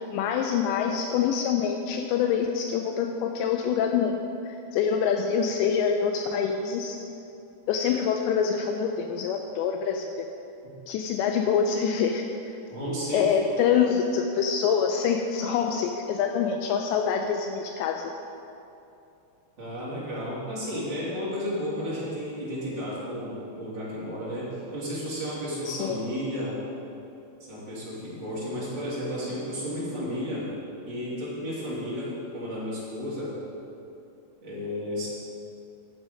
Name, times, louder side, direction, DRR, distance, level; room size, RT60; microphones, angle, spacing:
voice 1, 0.1-4.1 4.5-7.0 7.7-10.3 10.9-12.3 13.1-18.1 25.7-26.0, left 7 dB, 85° left, 4 dB, 2.5 m, -25 dB
voice 2, 12.7-13.4 19.6-26.6 27.4-30.5 30.8-33.4 34.4-35.1, equal, 30° right, -8 dB, 2.7 m, -33 dB
11.5 x 8.3 x 5.1 m, 2.7 s
omnidirectional pair, 5.6 m